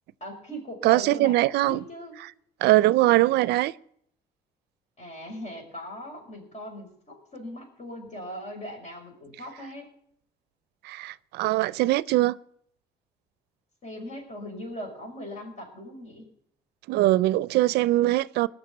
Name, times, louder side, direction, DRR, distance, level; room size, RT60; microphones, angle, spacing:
voice 1, 0.2-2.2 5.0-9.9 13.8-16.3, equal, 45° left, 5.4 m, -39 dB
voice 2, 0.8-1.8 2.6-3.7 10.8-12.4 16.9-18.5, right 17 dB, 80° right, 0.5 m, -22 dB
18.5 x 6.5 x 9.5 m
cardioid pair, 110°, 17 cm